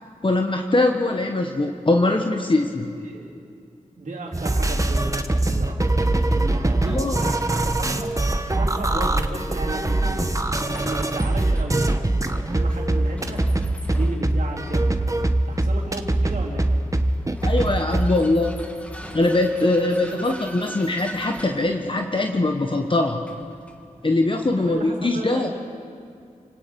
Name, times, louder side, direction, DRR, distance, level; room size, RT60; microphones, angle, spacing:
voice 1, 0.2-2.9 6.8-7.2 8.9-9.1 17.4-18.6 19.1-23.2 24.0-25.5, left 2 dB, 40° left, 3 dB, 1.3 m, -22 dB
voice 2, 4.0-5.9 6.3-8.2 8.5-10.3 10.6-11.9 12.4-13.5 13.9-15.0 15.5-16.7 20.0-20.8 24.6-25.5, right 2 dB, 75° right, -3 dB, 3.7 m, -34 dB
sound 1, 4.3-18.1, right 2 dB, 25° right, 1.2 m, -22 dB
Vehicle, 6.8-24.9, equal, 10° left, 2.2 m, -43 dB
29.0 x 18.0 x 5.3 m, 2.4 s
cardioid pair, 55°, 14 cm